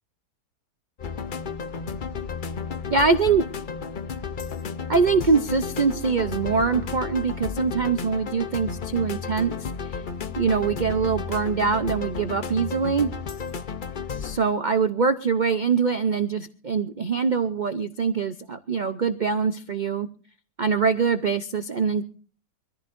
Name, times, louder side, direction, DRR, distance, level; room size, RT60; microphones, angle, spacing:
sound 1, 1.0-14.4, left 6 dB, 50° left, 0.6 m, -33 dB
voice 1, 2.9-3.4 4.9-10.0 10.4-13.1 14.2-20.1 20.6-22.0, right 5 dB, 85° right, 9 dB, 0.4 m, -23 dB
24.5 x 14.5 x 2.6 m, 0.41 s
omnidirectional pair, 1.8 m